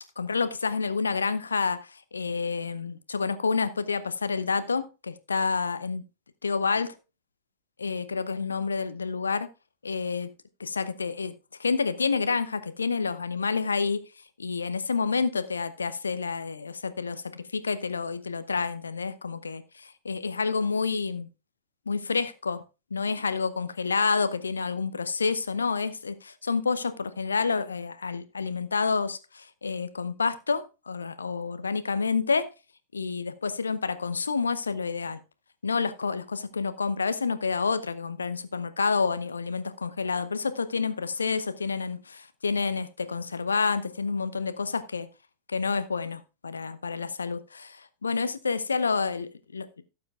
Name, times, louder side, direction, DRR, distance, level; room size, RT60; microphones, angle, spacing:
voice 1, 0.2-6.1 6.4-7.0 7.8-9.5 9.8-10.3 10.6-11.3 11.6-14.0 14.4-21.3 21.9-22.6 22.9-32.5 32.9-35.2 35.6-45.1 45.5-49.7, left 4 dB, 75° left, 0.7 m, -29 dB
17.0 x 6.9 x 2.4 m
figure-of-eight pair, 90°, 0 cm